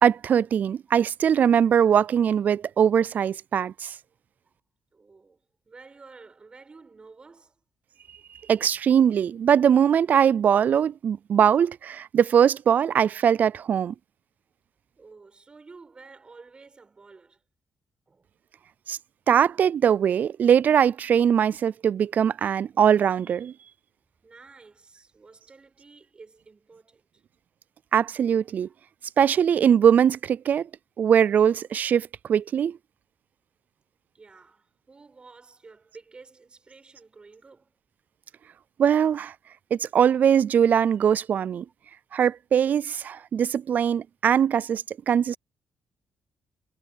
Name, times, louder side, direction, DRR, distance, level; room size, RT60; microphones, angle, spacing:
voice 1, 0.0-3.9 8.5-13.9 18.9-19.0 19.3-23.5 27.9-28.7 29.2-30.7 31.0-32.8 38.8-39.3 39.7-41.7 42.1-45.4, right 8 dB, 45° right, 0.3 m, -21 dB
voice 2, 4.9-7.6 15.0-17.4 18.1-18.3 24.2-27.2 28.6-28.8 34.1-37.7 43.2-43.3, right 4 dB, 25° right, 7.1 m, -51 dB
cardioid pair, 130°, 4 cm